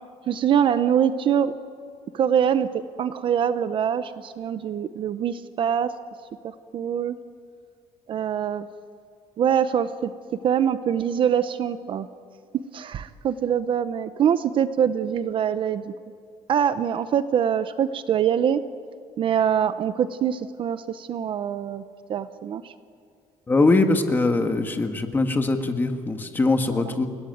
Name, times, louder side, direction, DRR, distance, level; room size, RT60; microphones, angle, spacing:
voice 1, 0.3-1.5 2.1-5.9 6.4-7.2 8.1-8.7 9.4-10.1 10.4-12.1 12.7-15.9 16.5-18.6 19.2-21.8 22.1-22.7 26.7-26.8, right 8 dB, 40° right, 12 dB, 0.7 m, -24 dB
voice 2, 23.5-27.1, left 3 dB, 15° left, 6 dB, 1.5 m, -22 dB
28.5 x 18.0 x 9.2 m, 2.2 s
cardioid pair, 175°, 13 cm